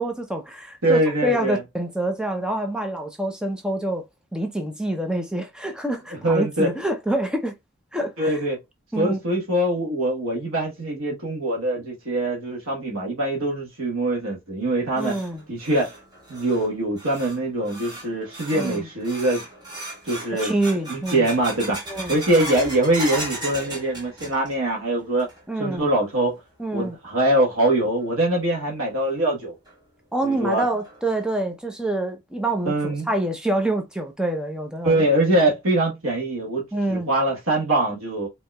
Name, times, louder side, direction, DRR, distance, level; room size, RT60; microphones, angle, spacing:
voice 1, 0.0-4.0 4.3-7.6 7.9-8.3 8.9-9.2 15.0-15.4 18.5-18.9 20.4-21.3 21.9-22.2 25.5-25.9 26.6-27.0 30.1-35.0 36.7-37.1, right 1 dB, 5° right, 0.5 m, -26 dB
voice 2, 0.8-1.6 6.2-6.7 8.2-8.6 9.0-15.1 15.5-15.9 16.3-19.4 20.0-20.5 20.9-21.8 22.1-25.3 25.6-26.4 26.7-29.5 30.2-30.6 32.7-33.1 34.8-38.3, right 1 dB, 80° right, 1.3 m, -23 dB
sound 1, 14.6-24.7 25.0-25.6 26.0-26.1 26.8-26.9 28.5-28.6 29.1-29.2 29.7-29.8 30.2-30.3 30.8-31.2, right 1 dB, 20° right, 1.4 m, -36 dB
4.3 x 2.8 x 2.2 m
head